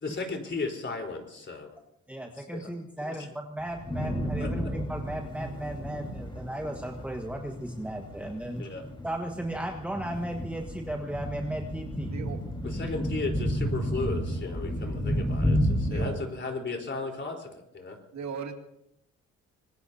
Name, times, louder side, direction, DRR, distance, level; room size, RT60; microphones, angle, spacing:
voice 1, 0.0-1.7 2.4-2.7 3.0-3.3 4.4-4.7 8.6-8.8 12.6-18.0, left 3 dB, 40° left, 2 dB, 4.2 m, -35 dB
voice 2, 2.1-8.6 9.0-12.2, right 1 dB, 5° right, 1 dB, 1.5 m, -35 dB
sound 1, 3.6-16.1, equal, 15° left, 4.4 m, -32 dB
voice 3, 12.1-12.4 15.8-16.2 18.1-18.5, right 6 dB, 65° right, 4 dB, 2.2 m, -37 dB
25.5 x 20.0 x 2.8 m, 0.80 s
cardioid pair, 90°, 30 cm